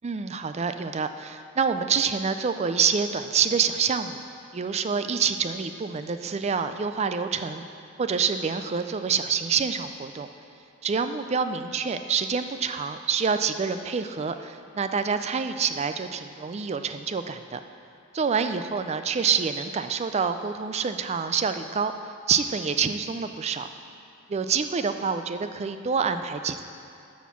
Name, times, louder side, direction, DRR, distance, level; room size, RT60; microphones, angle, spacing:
voice 1, 0.0-4.2 4.5-7.6 8.0-10.3 10.8-17.6 18.1-21.9 22.3-23.7 24.3-26.6, right 6 dB, 30° right, 9 dB, 0.3 m, -27 dB
12.5 x 4.3 x 6.0 m, 2.7 s
head